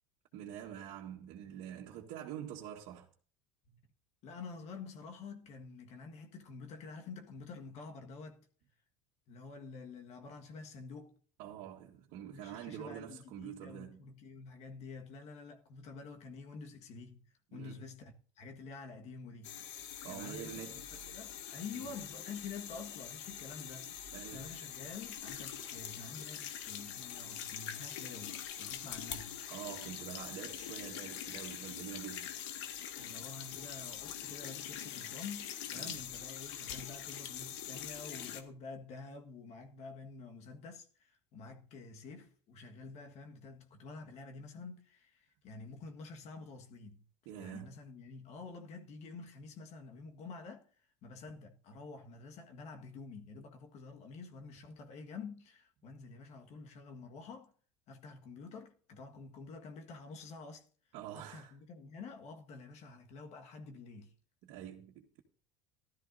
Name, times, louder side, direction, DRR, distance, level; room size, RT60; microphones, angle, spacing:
voice 1, 0.3-3.1 11.4-14.0 17.5-17.8 20.0-20.8 21.7-21.9 24.1-24.5 29.5-32.3 35.8-36.0 47.3-47.7 60.9-61.6 64.4-65.2, right 10 dB, 65° right, 1.8 m, -46 dB
voice 2, 4.2-8.4 9.3-11.2 12.3-17.2 17.5-19.6 20.1-23.9 24.3-29.4 32.9-47.0 47.4-50.7 51.0-57.5 57.9-60.6 61.1-64.1, left 4 dB, 50° left, 1.7 m, -49 dB
sound 1, 19.4-38.4, left 10 dB, 85° left, 1.8 m, -44 dB
15.5 x 13.0 x 2.7 m
supercardioid pair, 130°, 15 cm